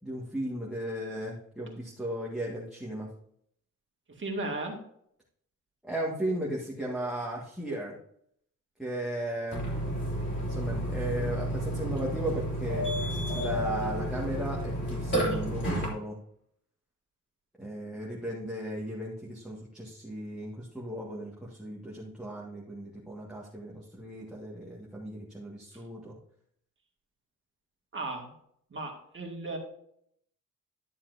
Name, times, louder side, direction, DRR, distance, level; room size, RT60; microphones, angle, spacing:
voice 1, 0.0-3.1 5.8-8.0 8.8-9.6 10.4-12.9 13.3-16.2 17.6-26.2, right 1 dB, ahead, -5 dB, 1.8 m, -36 dB
voice 2, 4.2-4.8 27.9-28.3 28.7-29.6, right 2 dB, 35° right, 1 dB, 2.1 m, -35 dB
Burping eructation, 9.5-15.9, equal, 35° left, 3.4 m, -31 dB
12.0 x 7.1 x 2.7 m, 0.68 s
cardioid pair, 115°, 33 cm